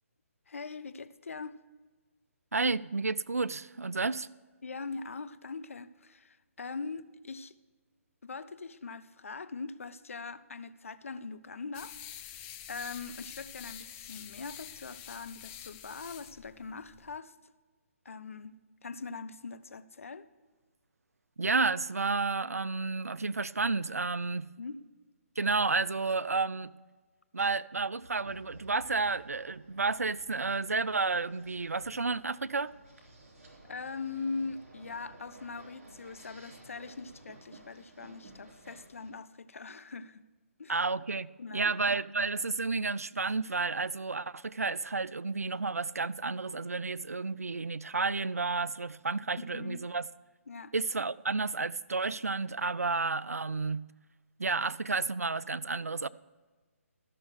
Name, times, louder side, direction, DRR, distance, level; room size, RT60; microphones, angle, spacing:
voice 1, 0.5-1.6 4.6-7.6 8.2-12.0 12.3-17.3 18.0-20.3 24.6-24.8 33.6-40.2 40.6-40.8 41.4-41.8 49.4-49.8 50.5-50.7, left 4 dB, 65° left, 0.6 m, -42 dB
voice 2, 2.5-4.3 21.4-24.5 25.4-26.7 27.3-32.7 40.7-50.1 50.7-53.9 54.4-56.1, right 4 dB, 85° right, 0.4 m, -31 dB
sound 1, 11.7-17.2, left 10 dB, 20° left, 0.5 m, -47 dB
sound 2, 28.0-39.1, right 2 dB, 65° right, 3.2 m, -54 dB
13.0 x 6.3 x 6.3 m
figure-of-eight pair, 140°, 8 cm